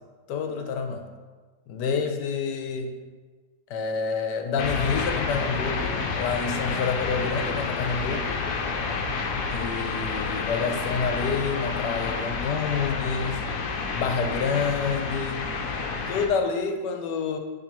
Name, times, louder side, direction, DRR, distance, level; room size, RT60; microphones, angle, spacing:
voice 1, 0.3-1.0 1.7-2.9 3.7-8.4 9.5-13.4 13.9-15.5 16.0-17.4, left 5 dB, 80° left, 5 dB, 1.2 m, -28 dB
sound 1, 4.6-16.3, left 4 dB, 65° left, 0.9 m, -29 dB
9.6 x 3.2 x 3.0 m, 1.4 s
omnidirectional pair, 1.9 m